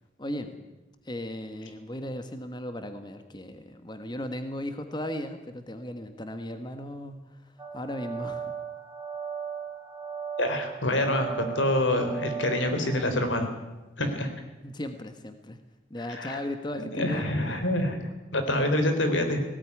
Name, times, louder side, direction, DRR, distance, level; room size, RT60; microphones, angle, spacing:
voice 1, 0.2-0.5 1.0-8.5 14.6-15.6 15.9-17.3, left 1 dB, 25° left, 8 dB, 1.3 m, -36 dB
sound 1, 7.6-13.0, right 7 dB, 20° right, 2.7 m, -37 dB
voice 2, 10.4-13.5 14.0-14.3 16.1-16.4 16.9-18.0 18.3-19.4, left 1 dB, 85° left, 7 dB, 3.8 m, -26 dB
19.0 x 17.5 x 9.7 m, 1.1 s
head